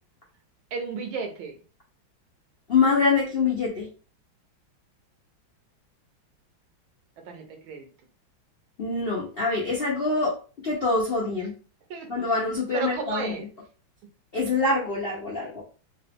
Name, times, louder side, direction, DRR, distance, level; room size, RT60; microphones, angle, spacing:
voice 1, 0.7-1.6 7.3-7.9 11.9-12.1 12.7-13.5, right 4 dB, 80° right, 5 dB, 1.6 m, -33 dB
voice 2, 2.7-3.9 8.8-10.3 10.6-11.5 12.1-13.5 14.3-15.6, left 4 dB, 60° left, -4 dB, 0.6 m, -25 dB
3.9 x 2.4 x 3.4 m, 0.37 s
omnidirectional pair, 2.2 m